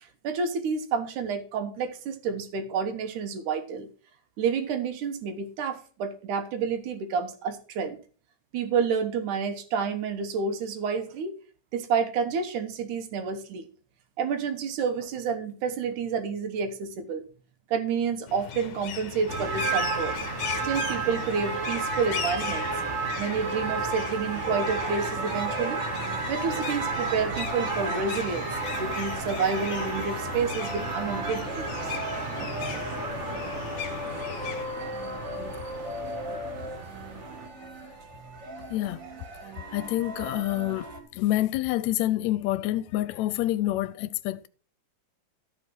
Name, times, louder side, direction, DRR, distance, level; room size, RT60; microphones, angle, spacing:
voice 1, 0.2-3.9 4.4-8.0 8.5-11.4 11.7-13.7 14.2-17.3 17.7-20.2 20.6-22.7 23.2-25.8 26.3-32.0, right 5 dB, 90° right, 2.8 m, -29 dB
sound 1, 18.3-34.6, left 8 dB, 60° left, 1.2 m, -38 dB
sound 2, 19.3-37.5, right 4 dB, 65° right, 0.6 m, -33 dB
sound 3, 24.5-41.0, equal, 40° right, 2.3 m, -38 dB
voice 2, 35.6-36.4 37.6-38.0 38.7-39.1 39.7-44.5, left 15 dB, 75° left, 1.8 m, -28 dB
13.0 x 5.4 x 6.0 m
omnidirectional pair, 3.4 m